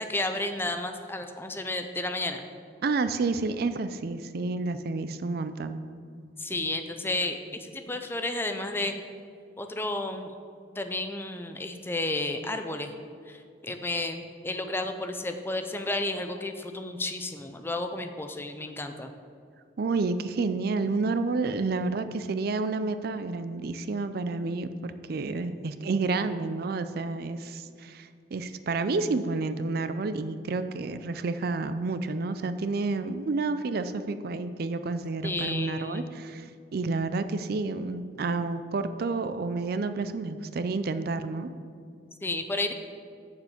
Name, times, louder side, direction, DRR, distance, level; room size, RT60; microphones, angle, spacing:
voice 1, 0.0-2.4 6.4-9.0 9.6-10.3 10.8-12.9 13.3-19.1 35.2-36.1 42.2-42.7, left 2 dB, 10° left, 6 dB, 0.5 m, -32 dB
voice 2, 2.8-5.8 19.8-41.5, right 3 dB, 55° right, 11 dB, 0.4 m, -30 dB
6.9 x 6.7 x 7.1 m, 2.3 s
head